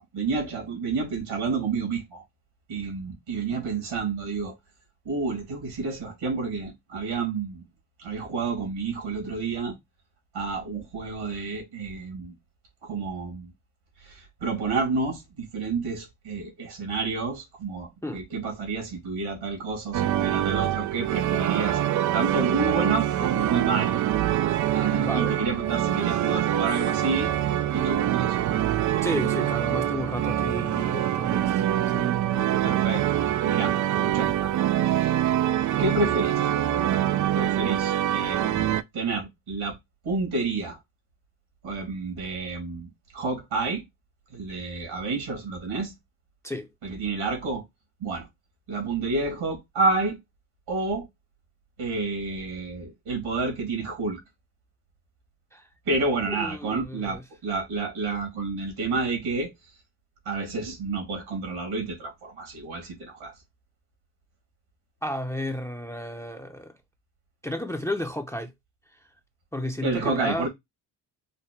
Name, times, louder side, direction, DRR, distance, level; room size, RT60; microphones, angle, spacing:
voice 1, 0.0-2.2 2.7-4.5 5.0-7.6 8.0-9.8 10.3-12.3 12.8-13.5 14.0-21.8 22.1-24.0 24.7-27.3 27.7-28.5 32.6-34.5 34.8-35.2 35.8-36.5 37.3-39.7 40.0-40.8 41.6-43.8 44.3-45.9 46.8-47.6 48.0-48.3 48.7-50.2 50.7-51.1 51.8-54.2 55.9-59.5 60.3-63.3 69.8-70.5, right 3 dB, 75° right, 2.6 m, -30 dB
sound 1, 19.9-38.8, right 11 dB, 40° right, 0.4 m, -25 dB
voice 2, 24.9-25.4 29.0-32.9 46.4-46.7 55.5-55.7 56.3-57.2 65.0-66.7 67.4-68.5 69.5-70.5, left 1 dB, 5° left, 0.7 m, -33 dB
5.0 x 2.1 x 3.2 m
hypercardioid pair, 50°, 48 cm